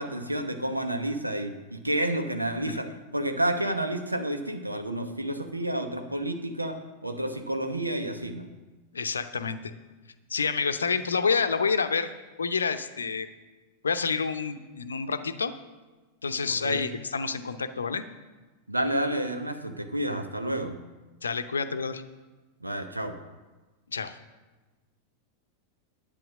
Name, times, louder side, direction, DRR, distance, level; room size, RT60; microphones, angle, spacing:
voice 1, 0.0-2.9 3.1-8.5 16.4-16.8 18.7-20.8 22.6-23.2, right 1 dB, 85° right, 6 dB, 0.9 m, -30 dB
voice 2, 8.9-9.7 10.3-12.1 12.4-13.3 13.8-15.5 16.2-18.0 21.2-22.0 23.9-24.2, left 5 dB, 75° left, 10 dB, 0.6 m, -28 dB
10.5 x 8.8 x 6.1 m, 1.2 s
figure-of-eight pair, 90°, 0 cm